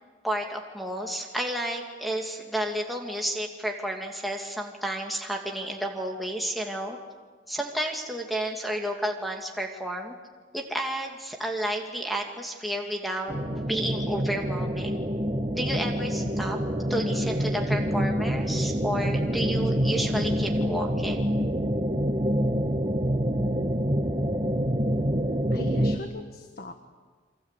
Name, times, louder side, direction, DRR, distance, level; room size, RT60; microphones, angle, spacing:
voice 1, 0.2-7.0 7.5-10.2 10.5-15.0 15.5-16.6 16.9-21.3, right 1 dB, ahead, 0 dB, 2.3 m, -31 dB
sound 1, 13.3-26.0, equal, 30° right, 1.5 m, -26 dB
voice 2, 25.5-26.7, left 2 dB, 50° left, 6 dB, 1.6 m, -40 dB
29.5 x 24.5 x 8.3 m, 1.4 s
head